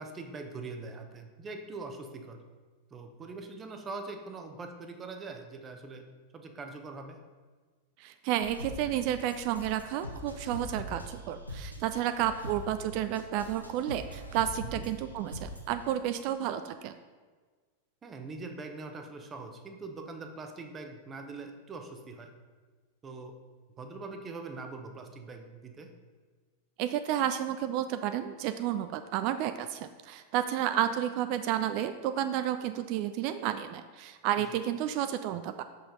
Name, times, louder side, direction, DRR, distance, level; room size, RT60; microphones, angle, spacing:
voice 1, 0.0-2.4 2.9-6.1 6.3-7.2 14.7-14.9 18.0-22.3 23.0-23.3 23.8-25.9, right 3 dB, 20° right, 5 dB, 0.8 m, -42 dB
voice 2, 8.0-16.9 26.8-35.6, right 11 dB, 45° right, 10 dB, 0.3 m, -31 dB
sound 1, 8.4-16.0, equal, 90° left, 0.8 m, -42 dB
5.6 x 5.4 x 5.3 m, 1.4 s
figure-of-eight pair, 90°, 0 cm